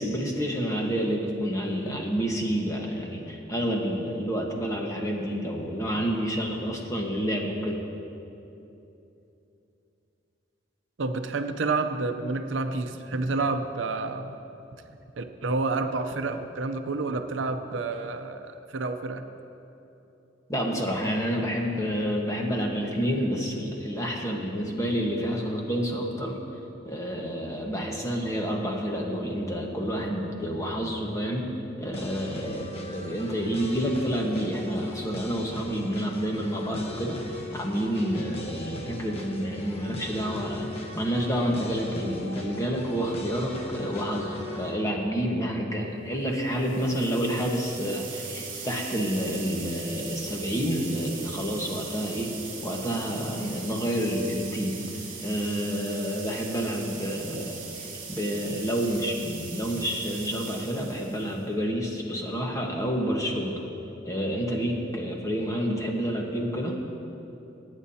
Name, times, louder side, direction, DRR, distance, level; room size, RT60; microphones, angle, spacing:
voice 1, 0.0-7.8 20.5-26.4 26.8-31.5 31.8-40.7 40.9-52.3 52.6-54.8 55.2-63.6 64.0-66.8, equal, 15° left, 0 dB, 1.3 m, -29 dB
voice 2, 11.0-14.4 15.2-19.3, right 3 dB, 80° right, 7 dB, 0.6 m, -29 dB
sound 1, 31.9-44.7, left 1 dB, 35° left, 1.1 m, -39 dB
sound 2, 46.5-61.4, right 5 dB, 40° right, 2.5 m, -40 dB
23.0 x 9.6 x 2.8 m, 2.9 s
head